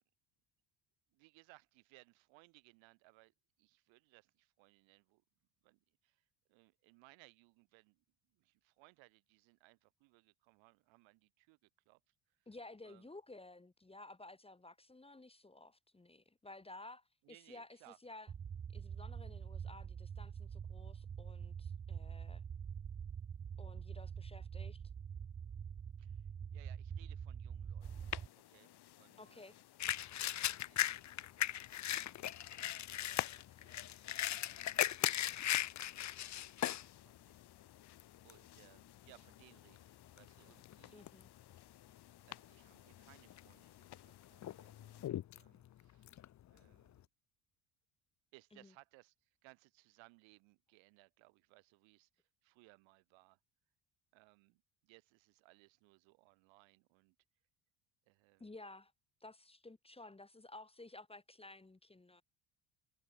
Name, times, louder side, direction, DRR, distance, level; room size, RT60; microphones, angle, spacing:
voice 1, 1.1-5.2 5.6-12.5 12.8-13.1 17.2-18.0 26.0-28.1 28.3-29.6 30.1-31.1 31.9-35.1 35.9-37.4 38.2-41.0 42.3-46.2 46.5-47.1 48.3-53.4 54.1-57.2 58.1-58.6, right 25 dB, 80° right, 5.4 m, -66 dB
voice 2, 12.5-17.7 18.0-18.3 18.7-22.4 23.6-24.8 29.2-29.6 40.9-41.3 48.5-48.7 58.4-58.9 59.2-62.2, left 2 dB, 15° left, 1.8 m, -54 dB
sound 1, 18.3-28.3, right 7 dB, 20° right, 0.3 m, -45 dB
sound 2, 27.8-45.1, left 14 dB, 60° left, 2.4 m, -52 dB
sound 3, 29.8-36.9 37.4-37.5 38.0-38.4 39.1-39.3 39.6-40.7 41.1-41.6 42.0-42.1 42.9-43.5 43.9-47.0, left 12 dB, 40° left, 0.7 m, -38 dB
supercardioid pair, 90°, 45 cm